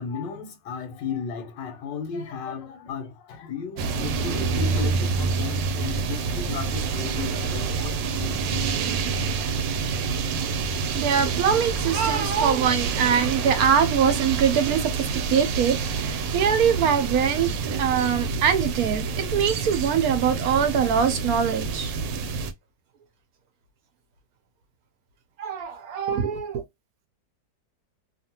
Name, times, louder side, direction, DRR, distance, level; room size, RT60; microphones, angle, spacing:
voice 1, 0.0-9.4, left 6 dB, 90° left, 1.4 m, -35 dB
sound 1, 3.8-22.5, right 4 dB, 85° right, 1.2 m, -27 dB
voice 2, 10.9-14.9 15.3-19.0 19.3-21.9 25.4-26.6, right 7 dB, 70° right, 1.0 m, -23 dB
2.8 x 2.5 x 2.7 m
omnidirectional pair, 1.9 m